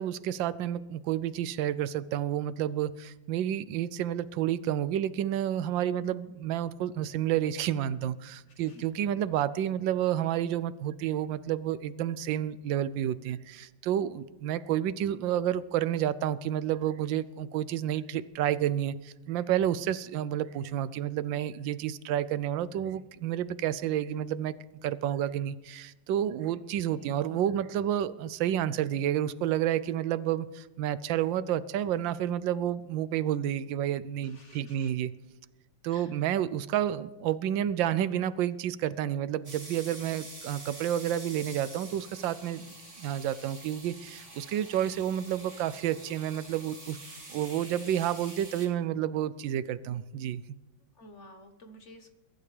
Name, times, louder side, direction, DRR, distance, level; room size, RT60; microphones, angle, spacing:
voice 1, 0.0-24.5 24.8-35.1 35.8-47.0 47.3-50.4, right 11 dB, 80° right, 16 dB, 1.3 m, -30 dB
voice 2, 8.5-8.9 26.6-26.7 27.0-27.1 34.2-34.9 35.9-36.3 50.9-52.1, left 1 dB, 40° left, 5 dB, 1.3 m, -53 dB
sound 1, 39.4-48.7, right 2 dB, 35° right, 3.3 m, -47 dB
22.5 x 12.0 x 3.3 m, 1.1 s
omnidirectional pair, 2.1 m